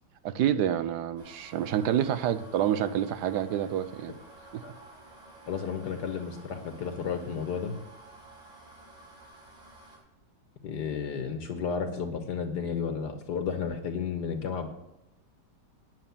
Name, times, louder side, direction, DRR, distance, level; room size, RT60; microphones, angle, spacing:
voice 1, 0.2-4.1 4.5-4.6, right 10 dB, 75° right, 12 dB, 1.3 m, -28 dB
sound 1, 1.2-10.0, right 2 dB, 35° right, 4.9 m, -52 dB
voice 2, 5.5-7.8 10.6-14.7, left 6 dB, 70° left, 6 dB, 1.6 m, -32 dB
9.6 x 8.6 x 6.9 m, 0.91 s
omnidirectional pair, 1.9 m